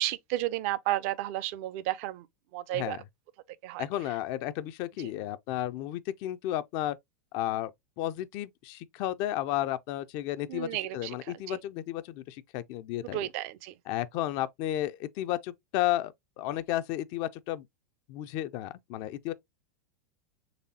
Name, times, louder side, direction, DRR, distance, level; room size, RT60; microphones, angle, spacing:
voice 1, 0.0-2.3 2.5-3.0 3.6-3.8 10.5-11.1 11.5-11.6 13.1-13.7, right 15 dB, 55° right, 0.5 m, -32 dB
voice 2, 3.8-7.0 7.3-13.3 13.9-17.7 18.1-19.3, left 13 dB, 50° left, 0.4 m, -33 dB
4.0 x 3.2 x 2.7 m
hypercardioid pair, 95°, 9 cm